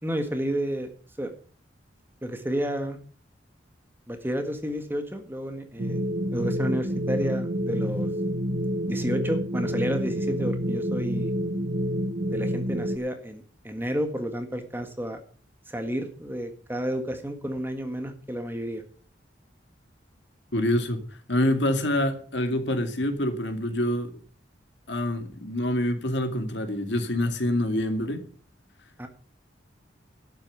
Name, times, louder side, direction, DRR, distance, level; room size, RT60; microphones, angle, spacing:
voice 1, 0.0-0.9 1.2-1.3 2.2-3.0 4.1-6.0 6.3-8.1 8.9-11.3 12.3-15.2 15.7-18.8 29.0-29.1, equal, 10° right, 1.6 m, -31 dB
sound 1, 5.8-13.0, equal, 45° right, 0.9 m, -28 dB
voice 2, 20.5-24.2 24.9-28.3, left 1 dB, 60° left, 2.2 m, -26 dB
12.0 x 8.9 x 7.0 m
head